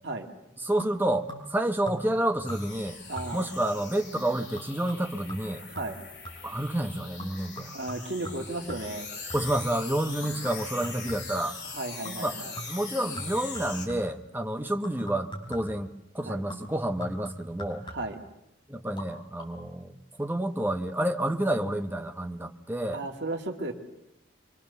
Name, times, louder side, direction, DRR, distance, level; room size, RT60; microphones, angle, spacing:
voice 1, 0.6-3.0 3.3-5.6 6.4-7.7 9.3-11.6 12.2-12.4 12.7-15.9 16.1-17.8 18.7-23.0, right 1 dB, 10° right, 5 dB, 1.1 m, -29 dB
sound 1, 0.8-1.6 1.9-2.2 2.5-2.9 3.2-3.6 4.1-6.6 7.2-9.7 10.2-11.5 12.0-12.3 12.6-14.2 14.8-15.9 16.5-18.3 18.8-19.1 19.4-19.5, equal, 25° left, 4.4 m, -42 dB
sound 2, 2.4-13.9, left 5 dB, 65° left, 4.6 m, -42 dB
voice 2, 3.1-3.5 5.7-6.0 7.7-9.1 11.7-12.5 16.2-16.4 17.8-18.2 22.9-23.7, right 2 dB, 65° right, 2 dB, 2.3 m, -34 dB
26.0 x 23.5 x 6.9 m, 0.86 s
head